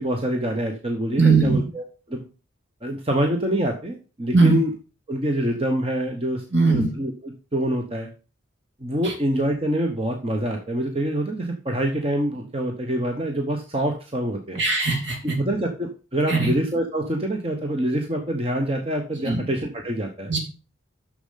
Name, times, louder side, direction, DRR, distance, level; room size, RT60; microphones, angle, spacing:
voice 1, 0.0-2.3 2.8-4.7 5.1-8.1 8.8-14.6 15.2-20.3, right 1 dB, 30° right, 3 dB, 1.0 m, -26 dB
voice 2, 1.2-1.6 4.3-4.6 6.5-6.9 9.0-9.1 14.6-15.2 16.3-16.5 19.2-19.4 20.3-20.4, right 4 dB, 65° right, 2 dB, 2.9 m, -19 dB
7.0 x 6.4 x 5.7 m, 0.34 s
head